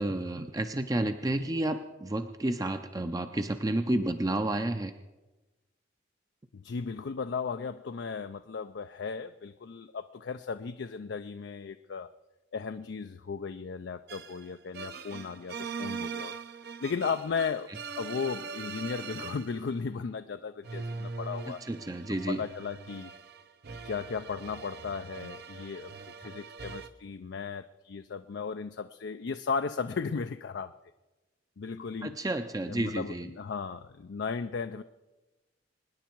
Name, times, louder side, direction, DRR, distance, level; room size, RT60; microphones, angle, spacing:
voice 1, 0.0-4.9 21.7-22.4 32.0-33.3, right 1 dB, 20° right, 7 dB, 0.5 m, -31 dB
voice 2, 6.5-12.1 12.5-16.3 16.8-17.7 18.0-21.6 22.1-23.1 23.8-25.9 26.2-30.7 31.6-32.2 32.7-34.8, left 5 dB, 70° left, 9 dB, 0.4 m, -35 dB
sound 1, 14.1-19.8 20.6-26.9, right 5 dB, 55° right, 0.7 m, -41 dB
25.0 x 10.5 x 4.6 m, 1.1 s
head